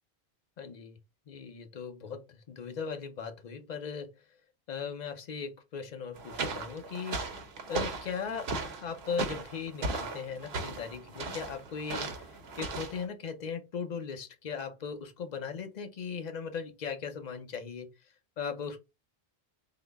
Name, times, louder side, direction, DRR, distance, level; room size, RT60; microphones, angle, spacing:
voice 1, 0.6-1.0 1.3-4.2 4.7-7.2 7.7-12.3 12.6-17.9 18.4-18.8, left 6 dB, 50° left, 0.7 m, -38 dB
sound 1, 6.2-13.1, right 3 dB, 80° right, 1.0 m, -37 dB
3.8 x 2.0 x 3.4 m
omnidirectional pair, 1.1 m